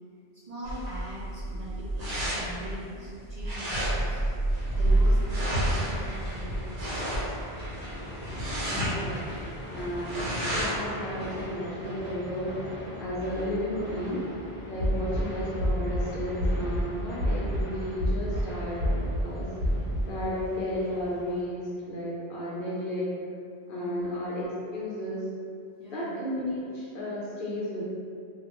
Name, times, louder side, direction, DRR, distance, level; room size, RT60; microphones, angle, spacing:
voice 1, 0.3-4.2 4.8-7.1 14.8-15.0 20.3-20.4 23.8-24.1 25.8-26.1, equal, 50° right, -10 dB, 0.5 m, -42 dB
sound 1, 0.6-10.9, right 1 dB, 75° right, 1.0 m, -29 dB
sound 2, 4.5-21.4, equal, 20° left, 0.3 m, -41 dB
voice 2, 8.7-9.4 9.7-14.3 14.7-19.5 20.1-23.1 23.7-25.3 25.9-27.9, equal, 60° left, -6 dB, 0.6 m, -33 dB
sound 3, 14.8-15.2 15.6-16.0 16.4-16.8 17.2-17.6 18.0-18.4 18.8-19.2 19.6-20.0, equal, 90° left, 0.9 m, -27 dB
2.3 x 2.1 x 2.9 m, 2.5 s
omnidirectional pair, 1.1 m